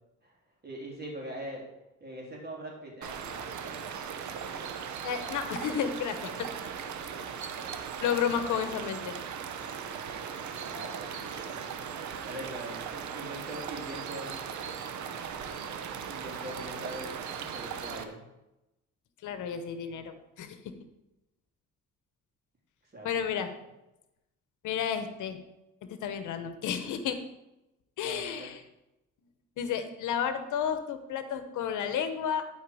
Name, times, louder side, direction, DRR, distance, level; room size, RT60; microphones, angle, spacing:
voice 1, 0.6-1.7 2.0-4.6 10.6-11.6 12.2-14.3 16.1-18.2 22.9-23.1 23.4-23.5 28.0-28.5, right 1 dB, 30° right, -2 dB, 3.4 m, -42 dB
sound 1, 3.0-18.0, right 7 dB, 70° right, 0.9 m, -38 dB
voice 2, 5.0-6.5 8.0-9.1 19.2-20.7 23.0-23.5 24.6-25.4 25.8-27.2 28.0-28.6 29.6-32.4, left 8 dB, 80° left, 9 dB, 0.9 m, -32 dB
12.0 x 4.7 x 4.9 m, 0.94 s
cardioid pair, 90°, 30 cm